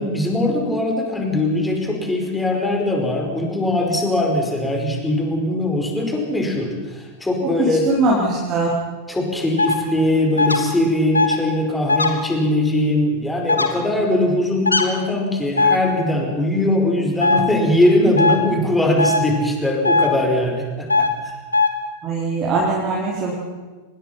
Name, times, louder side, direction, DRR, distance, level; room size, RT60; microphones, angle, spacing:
voice 1, 0.0-7.9 9.1-21.4, left 1 dB, 10° left, 2 dB, 5.0 m, -21 dB
voice 2, 7.4-8.7 22.0-23.3, right 2 dB, 30° right, -4 dB, 4.7 m, -21 dB
sound 1, 9.6-9.7 10.4-10.6 11.1-11.4 11.9-12.1 13.5-13.7 14.7-14.8 15.6-15.8 17.2-17.4 18.2-18.4 19.0-19.2 19.8-20.1 20.9-21.1 21.5-21.7, left 3 dB, 80° left, 2.1 m, -17 dB
25.0 x 20.5 x 5.9 m, 1.3 s
figure-of-eight pair, 90°, 0 cm